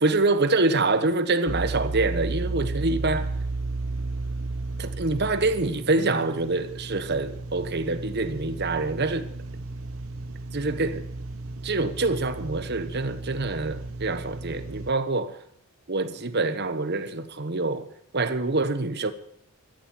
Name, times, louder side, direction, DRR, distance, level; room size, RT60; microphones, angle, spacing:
voice 1, 0.0-3.3 4.8-9.3 10.5-11.1 11.6-15.4 15.9-17.9 18.1-19.1, right 3 dB, 45° right, 1.2 m, -25 dB
sound 1, 1.5-14.9, right 3 dB, 65° right, 0.8 m, -34 dB
13.5 x 10.5 x 9.2 m
head